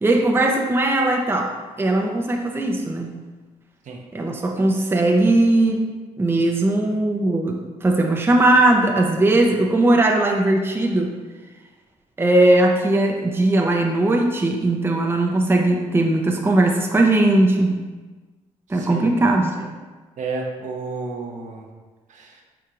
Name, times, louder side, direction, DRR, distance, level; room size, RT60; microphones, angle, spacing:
voice 1, 0.0-3.1 4.1-5.9 6.2-11.2 12.2-17.8 18.7-19.7, right 2 dB, 15° right, 1 dB, 0.6 m, -19 dB
voice 2, 18.7-19.1 20.2-21.7 22.1-22.4, right 3 dB, 60° right, 0 dB, 0.8 m, -31 dB
4.6 x 4.5 x 2.5 m, 1.3 s
hypercardioid pair, 55°, 14 cm